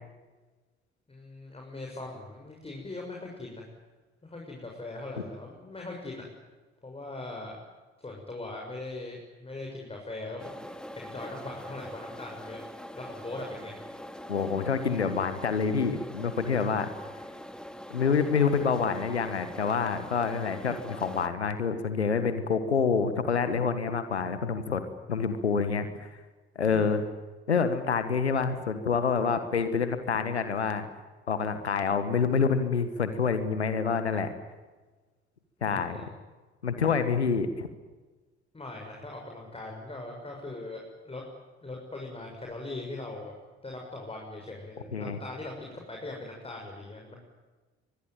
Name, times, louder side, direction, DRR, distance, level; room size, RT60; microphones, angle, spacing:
voice 1, 1.1-3.6 4.2-6.3 6.8-7.6 8.0-10.5 10.9-12.6 12.9-13.8 26.7-27.0 35.6-36.0 38.5-41.2 41.6-43.3 43.6-47.1, left 2 dB, 15° left, 0 dB, 6.6 m, -40 dB
sound 1, 10.4-21.3, equal, ahead, 2.3 m, -43 dB
voice 2, 14.3-16.9 17.9-24.8 25.1-26.1 26.5-27.0 27.5-30.9 31.3-34.3 35.6-36.0 36.6-37.7 44.9-45.2, left 5 dB, 85° left, 10 dB, 1.5 m, -27 dB
24.5 x 20.5 x 9.1 m, 1.3 s
figure-of-eight pair, 55°, 32 cm